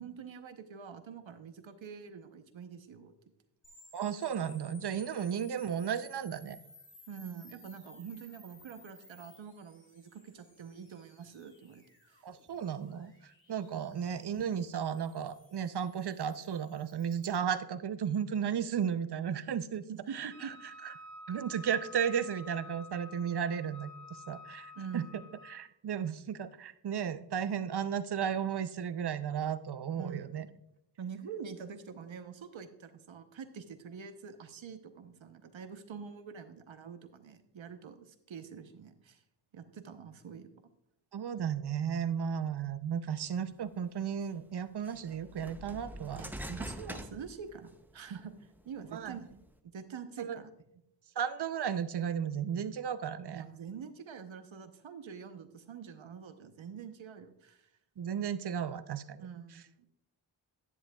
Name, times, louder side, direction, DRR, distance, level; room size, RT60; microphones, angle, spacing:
voice 1, 0.0-3.1 7.1-12.2 19.9-20.5 24.7-25.3 29.9-30.5 31.0-39.2 39.5-40.5 46.2-49.2 49.7-50.5 53.3-57.7 59.2-59.9, right 6 dB, 85° right, 9 dB, 0.9 m, -46 dB
sound 1, 3.6-17.4, left 1 dB, 25° left, 2.3 m, -59 dB
voice 2, 3.9-6.6 12.2-19.8 20.1-20.5 20.8-20.9 21.3-23.9 24.3-30.4 41.1-46.2 48.9-49.2 50.2-50.4 51.2-53.4 58.0-59.3, right 8 dB, 60° right, 13 dB, 0.6 m, -34 dB
Wind instrument woodwind instrument, 20.3-25.7, left 2 dB, 55° left, 2.2 m, -50 dB
sound 2, 43.8-43.9 44.8-47.9 48.4-49.5, right 1 dB, 5° right, 0.6 m, -44 dB
10.5 x 9.7 x 2.3 m, 0.78 s
wide cardioid pair, 85°, 45 cm